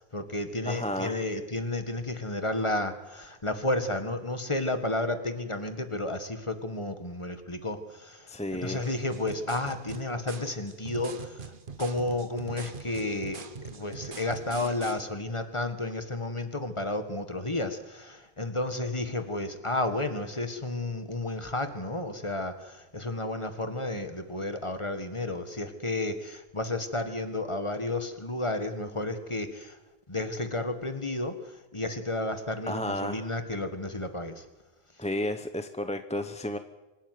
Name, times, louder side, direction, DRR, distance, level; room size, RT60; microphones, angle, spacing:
voice 1, 0.1-11.5 11.8-29.8 30.1-34.5, left 2 dB, 30° left, 8 dB, 1.8 m, -32 dB
voice 2, 0.7-1.3 8.3-8.9 32.7-33.3 35.0-36.6, left 1 dB, 5° left, 8 dB, 0.8 m, -32 dB
sound 1, 8.8-15.0, right 5 dB, 55° right, 1.3 m, -43 dB
25.5 x 13.0 x 9.4 m, 1.1 s
omnidirectional pair, 1.0 m